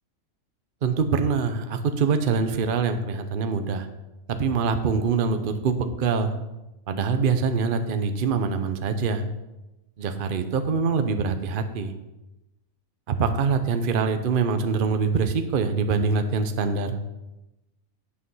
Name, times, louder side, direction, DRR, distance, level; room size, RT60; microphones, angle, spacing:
voice 1, 0.8-3.9 4.3-6.4 6.9-9.2 10.0-11.9 13.1-17.0, right 5 dB, 45° right, 8 dB, 0.8 m, -24 dB
9.8 x 6.3 x 5.5 m, 0.98 s
omnidirectional pair, 1.5 m